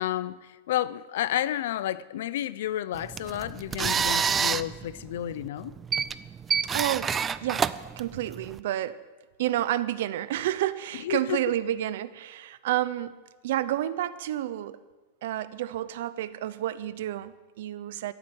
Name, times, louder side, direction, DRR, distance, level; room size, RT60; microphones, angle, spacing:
voice 1, 0.0-5.7 11.0-11.4, left 12 dB, 65° left, 17 dB, 0.6 m, -31 dB
sound 1, 2.9-8.6, right 6 dB, 15° right, 0.3 m, -28 dB
voice 2, 6.6-7.1 7.4-7.7 8.0-9.0 9.4-13.1 13.4-14.8 15.2-18.1, right 13 dB, 65° right, 15 dB, 0.7 m, -30 dB
14.0 x 7.8 x 8.8 m, 1.3 s
supercardioid pair, 165°, 0 cm